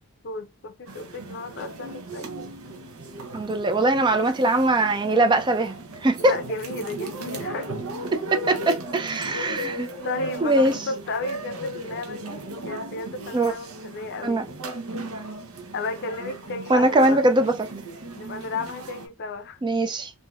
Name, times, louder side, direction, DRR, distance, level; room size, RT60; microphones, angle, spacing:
voice 1, 0.2-2.3 6.2-7.7 10.0-14.5 15.7-17.2 18.1-19.6, left 3 dB, 50° left, 0.5 m, -33 dB
sound 1, 0.9-19.1, right 1 dB, 75° right, 0.7 m, -37 dB
voice 2, 3.3-5.8 6.0-6.3 8.3-9.9 10.4-10.8 13.3-13.5 14.2-14.4 16.7-17.5 19.6-20.1, right 2 dB, 20° right, 0.3 m, -21 dB
3.2 x 2.6 x 2.3 m
head